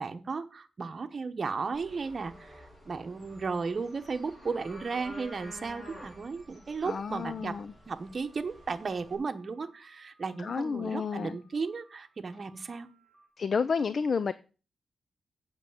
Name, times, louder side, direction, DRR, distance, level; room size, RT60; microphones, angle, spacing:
voice 1, 0.0-2.5 2.8-7.5 7.9-12.9, right 4 dB, 40° right, 1.0 m, -35 dB
sound 1, 1.7-9.1, equal, 30° left, 6.2 m, -50 dB
sound 2, 3.3-13.3, right 3 dB, ahead, 4.2 m, -64 dB
voice 2, 6.8-7.7 10.4-11.4 13.4-14.3, left 5 dB, 45° left, 0.4 m, -30 dB
8.2 x 6.4 x 7.3 m
wide cardioid pair, 130°, 0 cm